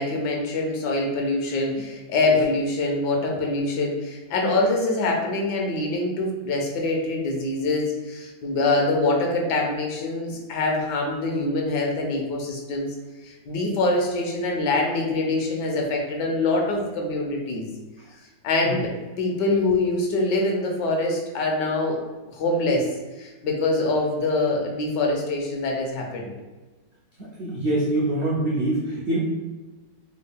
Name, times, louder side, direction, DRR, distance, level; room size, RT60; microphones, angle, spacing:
voice 1, 0.0-12.9 13.2-17.7 18.4-18.9 19.2-22.0 22.4-22.9 23.2-26.3, left 2 dB, 75° left, 0 dB, 1.3 m, -24 dB
voice 2, 27.4-29.2, right 1 dB, 75° right, -5 dB, 0.6 m, -24 dB
3.6 x 2.3 x 3.4 m, 1.2 s
omnidirectional pair, 1.9 m